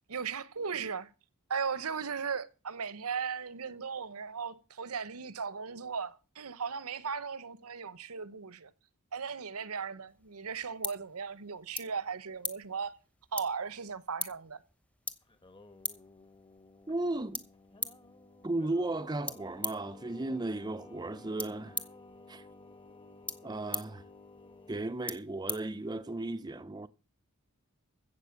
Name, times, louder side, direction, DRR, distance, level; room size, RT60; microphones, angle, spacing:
voice 1, 0.1-1.1 1.5-8.7 9.1-12.9 13.3-14.6, right 6 dB, 75° right, 0.9 m, -37 dB
sound 1, 10.1-26.3, left 2 dB, 5° left, 0.9 m, -44 dB
Singing, 15.2-25.0, left 2 dB, 20° left, 1.1 m, -54 dB
voice 2, 16.9-17.4 18.4-21.8 22.3-22.4 23.4-24.1 24.7-26.9, right 2 dB, 20° right, 0.6 m, -35 dB
15.0 x 7.6 x 5.9 m
head